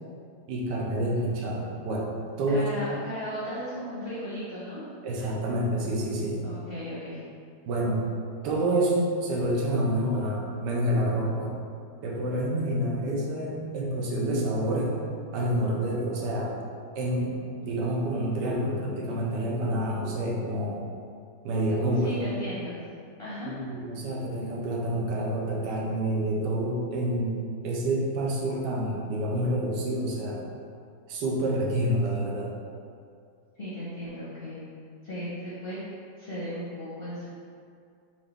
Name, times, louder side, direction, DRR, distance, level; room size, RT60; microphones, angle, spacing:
voice 1, 0.5-2.1 2.4-2.8 5.0-6.4 7.6-8.1 8.4-11.5 12.0-14.9 15.3-16.5 16.9-17.3 17.6-20.8 21.4-22.1 23.4-27.3 27.6-30.4 31.1-32.5, right 1 dB, 80° right, -3 dB, 1.3 m, -28 dB
voice 2, 2.5-4.8 6.4-7.2 22.0-22.8 23.2-23.5 33.6-34.6 35.0-35.8 36.2-37.3, equal, 50° left, -10 dB, 0.7 m, -36 dB
4.3 x 2.5 x 3.4 m, 2.3 s
omnidirectional pair, 1.8 m